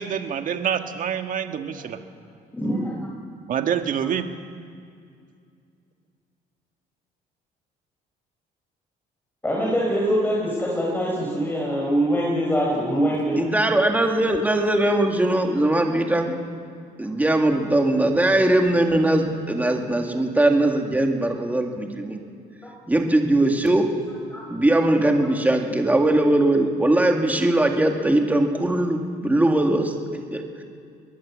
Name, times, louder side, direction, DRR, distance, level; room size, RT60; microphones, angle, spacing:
voice 1, 0.0-2.0 3.5-4.3, right 8 dB, 50° right, 7 dB, 1.7 m, -26 dB
voice 2, 2.5-2.9 9.4-13.3 24.3-24.4, equal, 10° left, -3 dB, 4.9 m, -23 dB
voice 3, 13.4-16.4 17.0-22.2 22.9-23.9 24.5-29.9 30.3-30.6, right 1 dB, 10° right, 3 dB, 2.2 m, -20 dB
21.5 x 18.0 x 7.4 m, 2.3 s
cardioid pair, 110°, 17 cm